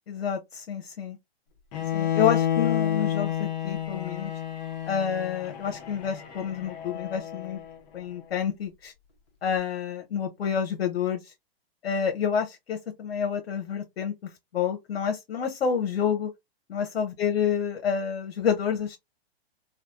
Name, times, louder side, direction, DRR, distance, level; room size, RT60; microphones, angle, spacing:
voice 1, 0.1-1.2 1.9-4.3 4.9-7.6 7.9-8.9 9.4-11.3 11.8-16.3 16.7-19.0, left 7 dB, 90° left, 0.8 m, -28 dB
Bowed string instrument, 1.7-7.8, left 10 dB, 40° left, 0.9 m, -30 dB
3.3 x 2.3 x 2.5 m
hypercardioid pair, 135°, 31 cm